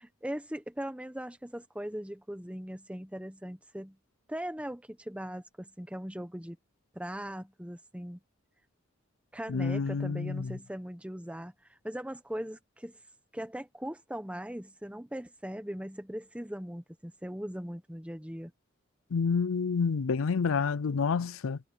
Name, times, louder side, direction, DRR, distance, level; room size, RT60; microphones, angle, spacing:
voice 1, 0.0-4.0 4.3-6.6 6.9-8.2 9.3-11.5 11.8-13.0 13.3-18.5, equal, 5° right, 1.1 m, -39 dB
voice 2, 9.5-10.6 19.1-21.6, left 5 dB, 80° left, 0.5 m, -29 dB
head